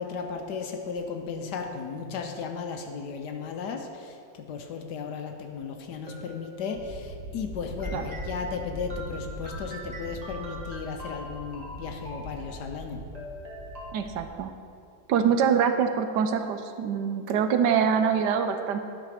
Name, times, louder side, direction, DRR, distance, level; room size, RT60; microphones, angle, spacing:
voice 1, 0.0-13.0, left 5 dB, 70° left, 4 dB, 1.2 m, -35 dB
sound 1, 5.8-7.1 7.8-14.0, equal, 25° right, 1.3 m, -44 dB
sound 2, 6.7-14.3, equal, 55° right, 2.2 m, -41 dB
voice 2, 13.9-14.5 15.1-18.8, right 7 dB, 75° right, 7 dB, 1.1 m, -24 dB
11.5 x 5.0 x 5.0 m, 2.5 s
omnidirectional pair, 2.0 m